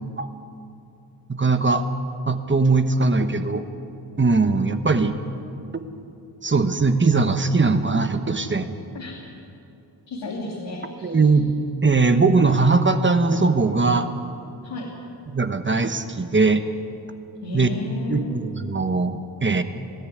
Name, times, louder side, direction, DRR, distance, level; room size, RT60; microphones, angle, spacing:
voice 1, 1.3-1.8 2.3-3.6 4.2-5.2 5.7-5.8 6.4-8.7 11.0-11.5 11.8-14.1 15.3-16.6 17.5-17.7 18.1-19.6, right 3 dB, 25° right, 8 dB, 1.2 m, -20 dB
voice 2, 10.1-11.5 14.6-14.9 17.4-18.4, left 2 dB, 85° left, -4 dB, 3.0 m, -33 dB
20.0 x 14.0 x 9.4 m, 2.6 s
cardioid pair, 85°, 42 cm